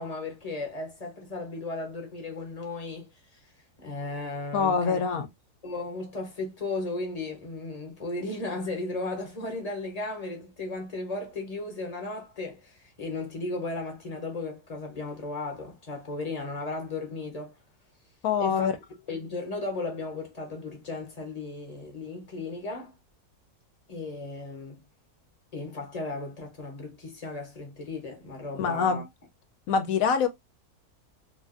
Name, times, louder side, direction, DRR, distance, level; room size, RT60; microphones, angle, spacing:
voice 1, 0.0-3.1 3.8-5.0 5.6-17.6 18.4-18.7 19.1-23.0 23.9-24.8 25.5-29.1, left 3 dB, 30° left, 0.8 m, -35 dB
voice 2, 4.5-5.3 18.2-18.7 28.5-29.0 29.7-30.3, left 6 dB, 70° left, 1.0 m, -24 dB
3.3 x 2.5 x 2.5 m
omnidirectional pair, 1.6 m